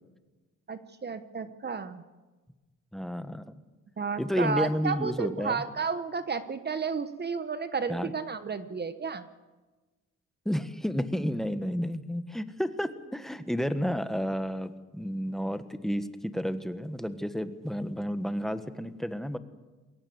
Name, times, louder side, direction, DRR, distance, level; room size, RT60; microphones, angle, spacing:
voice 1, 0.7-2.0 4.0-9.3, right 5 dB, 35° right, 11 dB, 1.1 m, -32 dB
voice 2, 2.9-3.5 4.2-5.6 7.9-8.1 10.4-19.4, equal, ahead, 10 dB, 1.4 m, -31 dB
22.0 x 18.0 x 8.0 m, 1.2 s
cardioid pair, 90°, 30 cm